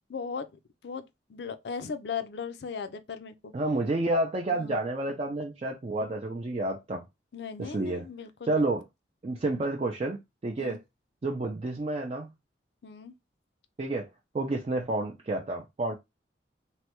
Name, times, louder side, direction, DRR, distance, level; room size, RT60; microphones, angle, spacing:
voice 1, 0.1-0.5 0.8-1.0 1.3-3.5 4.5-4.8 7.3-8.7 10.6-10.8 12.8-13.1, left 6 dB, 65° left, 0.4 m, -37 dB
voice 2, 3.5-7.0 7.6-8.1 8.4-8.8 9.2-10.8 11.2-12.3 13.8-14.1 14.3-16.0, right 2 dB, 35° right, 0.4 m, -30 dB
3.2 x 2.1 x 2.9 m
head